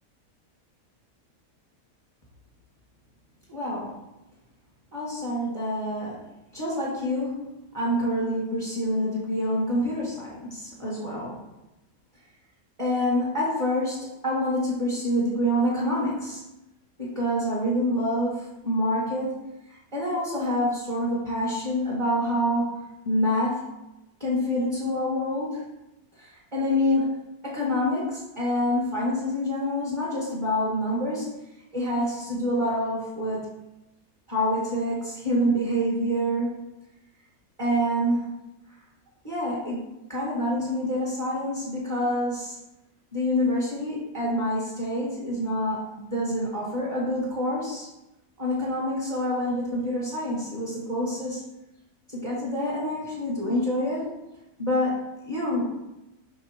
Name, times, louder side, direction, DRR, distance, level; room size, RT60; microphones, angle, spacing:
voice 1, 3.5-4.0 4.9-6.2 6.5-11.4 12.8-16.4 17.0-19.4 19.9-23.6 24.2-25.6 26.2-27.1 27.4-31.3 31.7-33.5 34.3-36.7 37.6-38.4 39.2-42.6 43.1-47.9 48.4-51.4 52.1-54.1 54.6-55.7, equal, 20° right, -6 dB, 1.6 m, -27 dB
5.3 x 4.7 x 4.4 m, 0.93 s
omnidirectional pair, 1.6 m